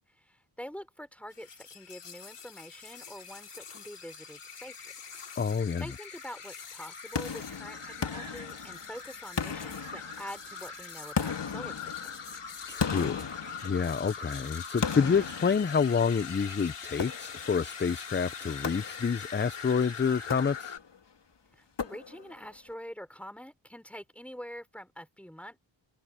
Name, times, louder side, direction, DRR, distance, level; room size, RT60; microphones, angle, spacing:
voice 1, 0.2-4.8 5.8-12.2 21.5-25.6, equal, 5° left, 4.3 m, -45 dB
sound 1, 1.3-20.8, left 5 dB, 90° left, 4.7 m, -43 dB
voice 2, 5.4-5.9 12.7-13.3 13.6-20.7, left 6 dB, 25° left, 0.5 m, -28 dB
sound 2, 7.2-9.0 9.4-10.5 11.2-14.2 14.8-16.2 17.0-17.6 18.6-19.4 20.2-21.0 21.8-22.5, left 6 dB, 55° left, 2.2 m, -36 dB
wide cardioid pair, 110°, 49 cm